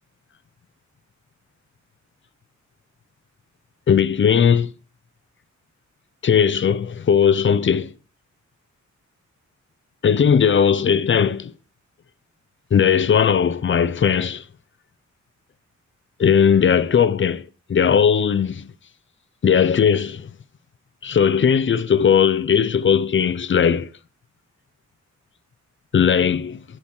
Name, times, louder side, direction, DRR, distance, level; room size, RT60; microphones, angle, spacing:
voice 1, 3.9-4.7 6.2-7.9 10.0-11.5 12.7-14.4 16.2-17.4 17.7-18.7 19.4-20.3 21.0-23.9 25.9-26.6, left 7 dB, 40° left, 0.4 m, -18 dB
9.0 x 7.1 x 3.0 m
wide cardioid pair, 115°, 30 cm